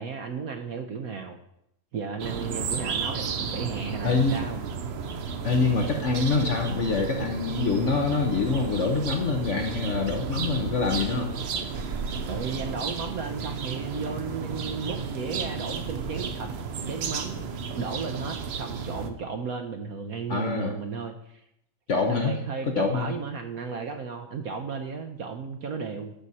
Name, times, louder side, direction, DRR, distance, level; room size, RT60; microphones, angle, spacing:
voice 1, 0.0-1.4 1.9-4.6 12.3-16.5 16.9-17.5 17.7-21.4 22.2-26.1, right 5 dB, 60° right, 5 dB, 1.0 m, -34 dB
sound 1, 2.2-19.1, right 5 dB, 85° right, 0.5 m, -33 dB
voice 2, 4.0-4.4 5.4-11.3 20.3-20.7 21.9-22.3 22.7-23.1, left 4 dB, 50° left, 3 dB, 0.9 m, -25 dB
12.0 x 6.3 x 4.1 m, 0.78 s
omnidirectional pair, 2.1 m